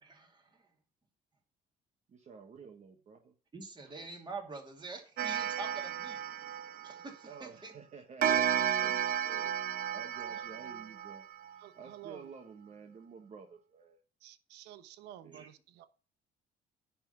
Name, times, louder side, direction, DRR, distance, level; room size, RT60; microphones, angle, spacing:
voice 1, 0.0-0.6 3.5-6.5 6.8-7.7 15.3-15.5, right 3 dB, 25° right, 2 dB, 2.5 m, -46 dB
voice 2, 2.1-3.3 7.3-14.0 15.2-15.5, right 5 dB, 40° right, 4 dB, 1.2 m, -51 dB
Clock, 5.2-7.4 8.2-11.6, right 9 dB, 60° right, 0.7 m, -33 dB
voice 3, 11.6-12.2 14.2-15.9, right 11 dB, 85° right, 12 dB, 0.9 m, -51 dB
10.0 x 3.8 x 6.8 m, 0.37 s
cardioid pair, 110°, 17 cm